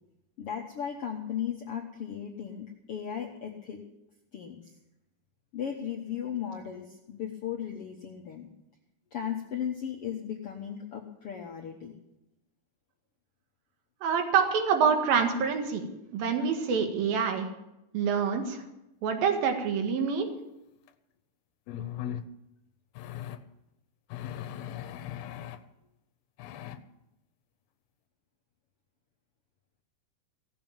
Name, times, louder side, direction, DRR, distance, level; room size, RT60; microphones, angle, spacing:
voice 1, 0.4-3.8 4.3-4.6 5.5-8.5 9.1-11.9, left 8 dB, 65° left, 1 dB, 1.5 m, -36 dB
voice 2, 14.0-15.9 16.1-17.5 17.9-18.6 19.0-20.3, right 6 dB, 80° right, 4 dB, 3.6 m, -26 dB
sound 1, 20.9-21.0 21.7-22.2 22.9-23.4 24.1-25.6 26.4-26.8, left 11 dB, 85° left, 2.7 m, -38 dB
17.5 x 7.7 x 8.9 m, 0.89 s
omnidirectional pair, 4.2 m